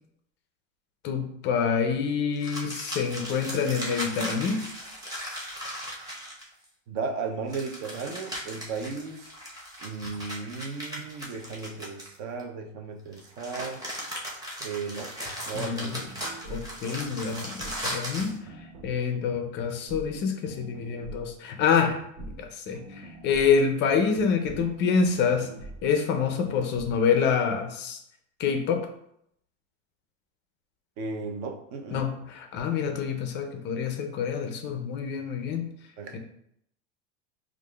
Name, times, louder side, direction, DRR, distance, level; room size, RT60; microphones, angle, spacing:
voice 1, 1.0-4.6 15.5-16.0 16.4-18.4 18.8-25.5 25.8-28.0 28.4-28.9 31.9-35.7 36.1-36.2, left 6 dB, 30° left, 5 dB, 0.4 m, -27 dB
sound 1, 2.4-6.6 7.5-12.4 13.1-18.4, equal, 10° right, 0.8 m, -37 dB
voice 2, 6.9-9.3 9.8-13.8 14.6-15.1 15.5-16.1 31.0-32.0 36.0-36.2, right 4 dB, 50° right, 4 dB, 0.7 m, -35 dB
sound 2, 15.9-27.0, right 3 dB, 85° right, 0.8 m, -45 dB
4.7 x 2.5 x 2.3 m, 0.73 s
supercardioid pair, 130°, 38 cm